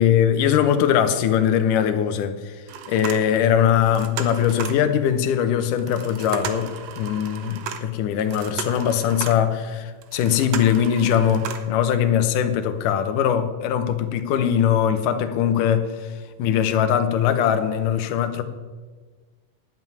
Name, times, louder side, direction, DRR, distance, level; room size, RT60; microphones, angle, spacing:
voice 1, 0.0-2.6 2.9-16.1 16.4-18.4, left 9 dB, 75° left, 2.4 m, -21 dB
sound 1, 2.7-3.6 3.9-4.9 5.8-9.5 10.0-11.8 12.3-12.4 12.8-12.9, right 7 dB, 65° right, 1.7 m, -35 dB
10.5 x 8.0 x 9.4 m
omnidirectional pair, 3.9 m